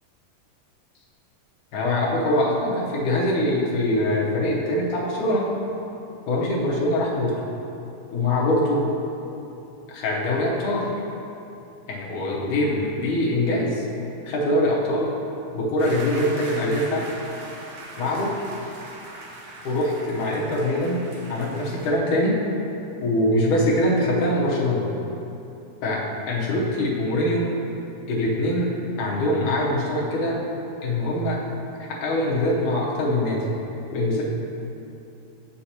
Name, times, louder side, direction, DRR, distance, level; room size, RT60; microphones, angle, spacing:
voice 1, 1.7-5.5 6.3-7.4 8.1-8.9 9.9-10.9 11.9-13.8 14.2-15.2 15.5-17.1 18.0-18.3 19.6-21.0 21.3-22.4 23.0-24.8 25.8-27.5 28.1-28.7 29.0-30.4 30.8-31.4 31.9-33.4 33.9-34.3, left 1 dB, 85° left, -4 dB, 2.5 m, -23 dB
sound 1, 15.8-21.9, right 2 dB, 90° right, 1.1 m, -40 dB
8.0 x 6.3 x 2.9 m, 2.8 s
omnidirectional pair, 3.5 m